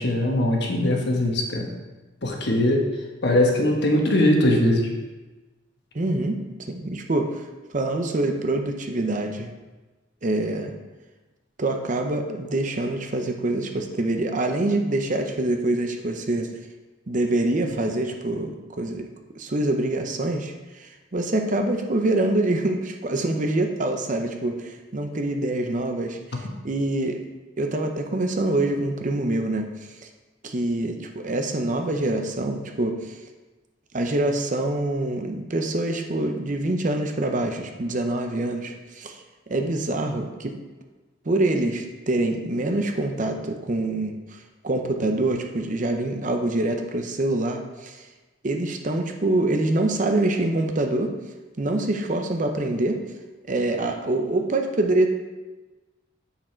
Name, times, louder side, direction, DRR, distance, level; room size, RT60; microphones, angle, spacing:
voice 1, 0.0-1.7 2.2-2.8 3.2-4.9, left 1 dB, 60° left, 1 dB, 1.2 m, -21 dB
voice 2, 5.9-7.4 7.7-9.5 10.2-10.7 11.6-16.5 17.1-19.1 19.3-27.2 27.6-29.7 30.4-33.2 33.9-39.2 39.5-40.6 41.2-48.1 48.4-51.1 51.6-53.0 53.5-55.1, right 2 dB, 40° right, 5 dB, 0.7 m, -25 dB
7.0 x 6.2 x 4.4 m, 1.2 s
head